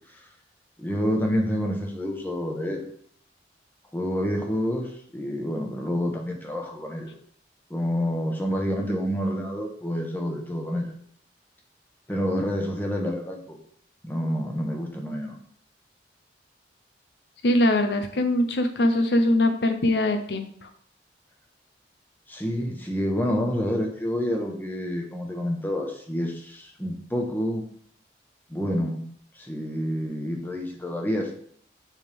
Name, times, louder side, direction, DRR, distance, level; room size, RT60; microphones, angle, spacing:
voice 1, 0.8-2.9 3.9-7.1 7.7-10.9 12.1-13.6 14.0-15.4 22.3-27.6 28.5-29.0 29.3-31.3, equal, 10° left, 1 dB, 1.1 m, -28 dB
voice 2, 17.4-20.7, left 1 dB, 70° left, 7 dB, 0.6 m, -22 dB
9.3 x 3.5 x 3.5 m, 0.62 s
head